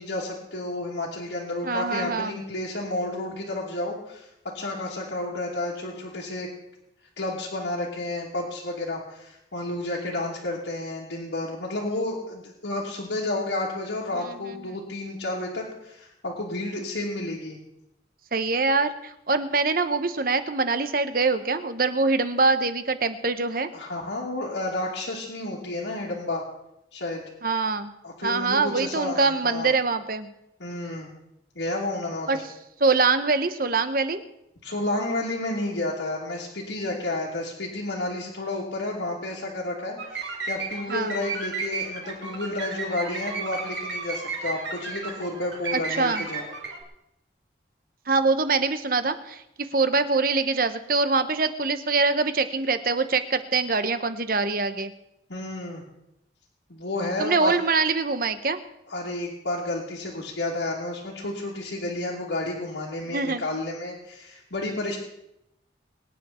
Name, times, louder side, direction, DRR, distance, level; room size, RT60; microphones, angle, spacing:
voice 1, 0.0-4.3 4.5-6.5 7.2-17.6 23.7-26.4 26.9-27.2 28.0-29.7 30.6-31.1 31.5-32.4 34.6-46.5 55.3-55.8 56.7-57.5 58.9-65.0, left 2 dB, 80° left, -7 dB, 2.9 m, -31 dB
voice 2, 1.6-2.4 14.1-14.8 18.3-23.7 27.4-27.9 28.2-30.3 32.3-32.4 32.8-34.2 40.9-41.2 45.7-46.2 48.1-54.9 57.2-58.6 63.1-63.4, right 4 dB, 50° right, 10 dB, 1.0 m, -24 dB
sound 1, 40.0-46.8, right 4 dB, 80° right, 3.9 m, -33 dB
23.0 x 9.8 x 4.4 m, 0.82 s
head